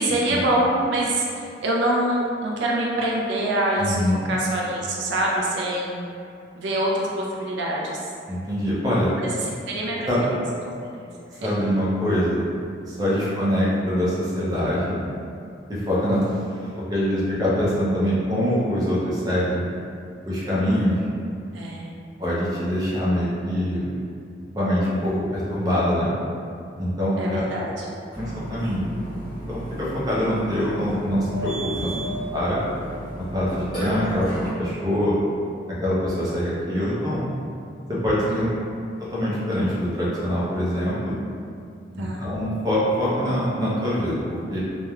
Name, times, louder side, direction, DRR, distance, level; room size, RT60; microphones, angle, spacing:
voice 1, 0.0-6.0 6.6-8.1 9.2-10.3 11.0-11.7 13.1-13.3 16.1-16.5 21.5-21.9 27.2-27.9 31.8-32.0 34.1-34.3 38.3-38.6 42.0-42.3, right 1 dB, 80° right, -3 dB, 0.4 m, -26 dB
voice 2, 3.8-4.2 8.3-9.1 10.1-10.2 11.4-12.5 12.9-15.0 15.7-16.2 16.8-19.6 20.3-21.0 22.2-23.9 24.5-26.1 26.8-27.4 28.2-28.9 29.5-31.9 32.3-32.6 33.3-34.3 34.6-35.2 35.8-37.3 37.9-38.5 39.0-41.2 41.9-44.6, equal, 20° right, -8 dB, 0.5 m, -24 dB
Burping eructation, 28.1-34.5, right 1 dB, 25° left, 1.0 m, -33 dB
2.9 x 2.1 x 2.3 m, 2.4 s
head